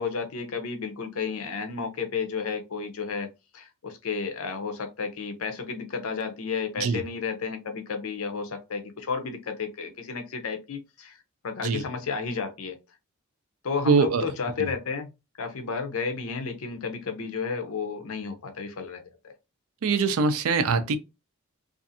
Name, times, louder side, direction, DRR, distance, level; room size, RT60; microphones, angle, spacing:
voice 1, 0.0-3.3 3.5-11.2 11.4-12.8 13.6-15.1 15.4-19.3, left 5 dB, 65° left, 0.6 m, -32 dB
voice 2, 13.8-14.3 14.6-14.7 19.8-21.0, right 5 dB, 65° right, 0.4 m, -23 dB
2.5 x 2.4 x 2.6 m
head